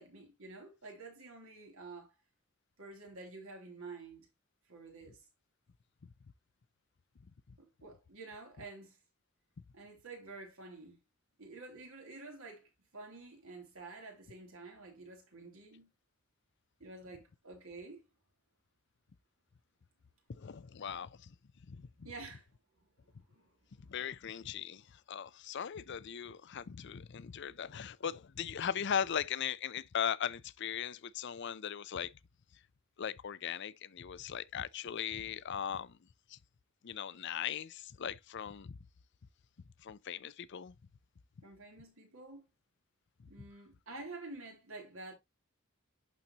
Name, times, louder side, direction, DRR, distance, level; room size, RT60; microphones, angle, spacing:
voice 1, 0.0-2.1 2.8-4.3 4.7-5.2 7.6-9.0 9.7-11.0 11.4-15.9 16.8-18.0 22.0-22.5 22.7-23.5 41.4-42.5 43.3-45.1, right 3 dB, 75° right, 3.1 m, -49 dB
voice 2, 20.3-21.3 21.7-22.1 23.9-32.1 33.0-36.0 36.3-36.4 36.8-38.8 39.8-40.7, left 8 dB, 55° left, 0.5 m, -39 dB
11.5 x 4.2 x 2.9 m
head